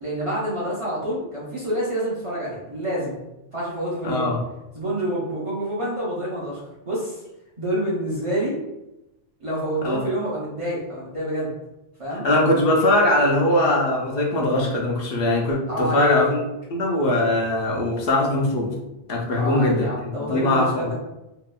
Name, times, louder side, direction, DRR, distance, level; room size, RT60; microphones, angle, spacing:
voice 1, 0.0-3.2 3.5-4.3 4.7-6.6 6.9-7.2 7.6-8.6 9.4-11.5 12.0-12.2 15.7-16.3 19.4-20.9, equal, 35° right, -7 dB, 0.7 m, -27 dB
voice 2, 4.0-4.4 9.8-10.0 12.2-16.4 16.7-18.7 19.1-19.9 20.2-20.9, left 1 dB, 70° left, -1 dB, 0.8 m, -21 dB
2.8 x 2.3 x 2.2 m, 0.92 s
omnidirectional pair, 1.1 m